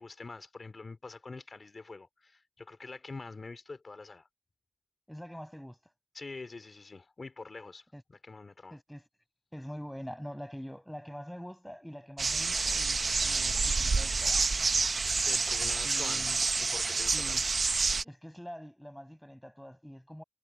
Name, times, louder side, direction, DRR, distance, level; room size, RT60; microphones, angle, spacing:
voice 1, 0.0-4.3 6.1-7.8 8.2-8.8 15.2-16.3 16.6-17.4, left 3 dB, 65° left, 4.2 m, -45 dB
voice 2, 5.1-5.8 7.9-8.0 8.7-9.1 9.5-14.5 15.8-16.4 17.1-17.5 18.0-20.2, equal, 5° left, 6.9 m, -44 dB
sound 1, 12.2-18.0, right 4 dB, 75° right, 0.7 m, -28 dB
cardioid pair, 50°, 0 cm